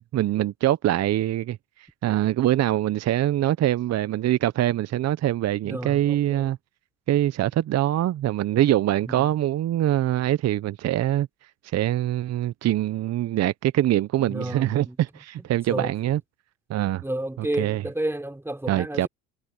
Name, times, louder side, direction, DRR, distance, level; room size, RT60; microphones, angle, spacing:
voice 1, 0.0-1.6 2.0-6.6 7.1-11.3 11.6-16.2 16.7-17.0 17.6-17.8 18.7-19.1, right 13 dB, 45° right, 0.8 m, -23 dB
voice 2, 5.6-6.5 9.1-9.3 14.2-15.0 15.4-15.9 16.8-19.1, right 1 dB, 5° right, 3.5 m, -32 dB
supercardioid pair, 80°, 37 cm